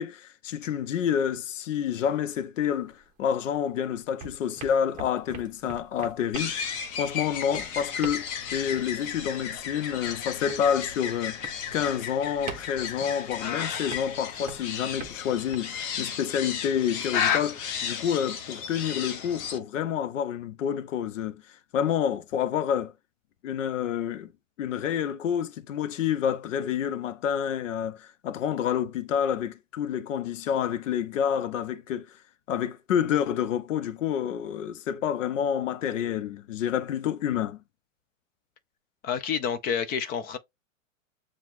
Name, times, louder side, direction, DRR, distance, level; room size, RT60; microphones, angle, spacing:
voice 1, 0.0-11.4 11.7-22.9 23.4-24.3 24.6-32.1 32.5-37.6, left 9 dB, 70° left, 0.8 m, -28 dB
sound 1, 2.6-3.7 4.0-15.6, right 6 dB, 20° right, 1.0 m, -44 dB
sound 2, 6.3-19.6, left 7 dB, 40° left, 0.9 m, -33 dB
voice 2, 39.0-40.4, left 7 dB, 25° left, 0.5 m, -29 dB
7.2 x 2.5 x 2.5 m
hypercardioid pair, 115°, 39 cm